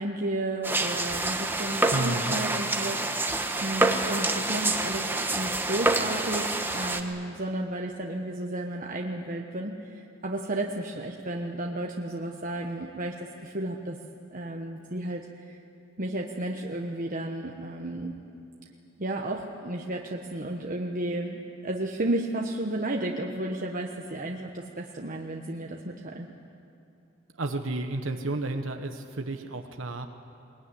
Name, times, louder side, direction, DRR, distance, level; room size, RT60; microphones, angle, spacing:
voice 1, 0.0-13.2 13.4-14.0 14.3-15.6 16.0-18.1 19.0-26.3, right 1 dB, 45° right, 1 dB, 1.3 m, -33 dB
sound 1, 0.6-7.0, right 2 dB, 10° right, 1.3 m, -27 dB
voice 2, 1.9-2.3 27.3-30.1, right 2 dB, 75° right, 5 dB, 1.3 m, -32 dB
21.5 x 21.0 x 9.9 m, 2.6 s
head